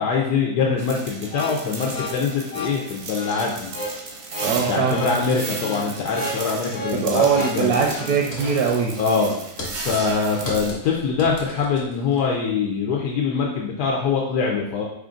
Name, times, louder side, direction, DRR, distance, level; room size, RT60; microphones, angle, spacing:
voice 1, 0.0-3.7 4.5-7.3 7.5-7.8 9.0-9.4 9.8-14.8, left 5 dB, 85° left, -1 dB, 1.2 m, -23 dB
sound 1, 0.8-10.7, right 3 dB, 55° right, 0.7 m, -35 dB
sound 2, 1.3-8.2, equal, 60° left, 0.6 m, -33 dB
voice 2, 4.4-5.1 6.9-8.9, right 6 dB, 75° right, 0 dB, 1.1 m, -21 dB
sound 3, 7.2-8.1 8.3-8.6 8.9-12.2, left 1 dB, 45° left, 1.2 m, -36 dB
5.0 x 2.4 x 3.8 m, 0.79 s
omnidirectional pair, 1.7 m